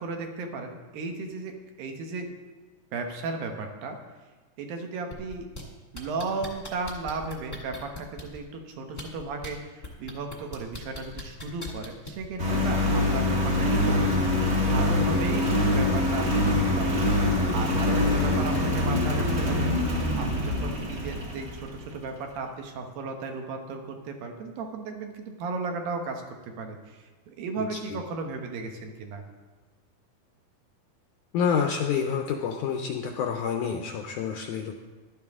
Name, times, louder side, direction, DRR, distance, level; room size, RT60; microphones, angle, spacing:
voice 1, 0.0-2.3 2.9-4.0 4.6-5.5 5.9-14.4 14.7-17.1 17.5-19.7 20.2-29.2, right 3 dB, 75° right, 4 dB, 2.9 m, -35 dB
sound 1, 5.1-5.6 5.9-8.4 8.9-9.5 9.8-12.3 13.3-13.4, left 2 dB, 20° left, 1.1 m, -39 dB
Engine, 12.4-21.8, left 1 dB, 35° right, 1.4 m, -24 dB
voice 2, 18.0-18.4 27.6-28.0 31.3-34.8, left 7 dB, 80° left, 3 dB, 1.8 m, -29 dB
14.5 x 12.0 x 3.6 m, 1.3 s
omnidirectional pair, 4.3 m